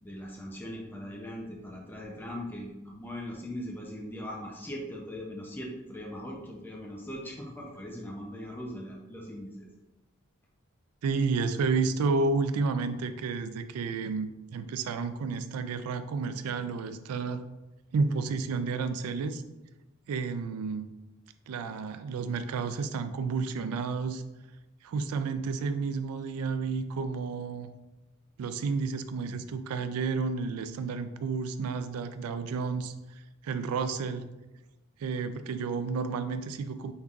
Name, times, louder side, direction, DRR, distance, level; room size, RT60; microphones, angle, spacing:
voice 1, 0.0-9.7, equal, 10° left, -2 dB, 0.6 m, -40 dB
voice 2, 11.0-17.4 17.9-19.4 20.1-20.9 21.5-24.2 24.8-27.7 28.4-32.9 33.4-34.2 35.0-36.9, right 4 dB, 85° right, 10 dB, 0.3 m, -31 dB
5.3 x 3.4 x 2.4 m, 1.0 s
head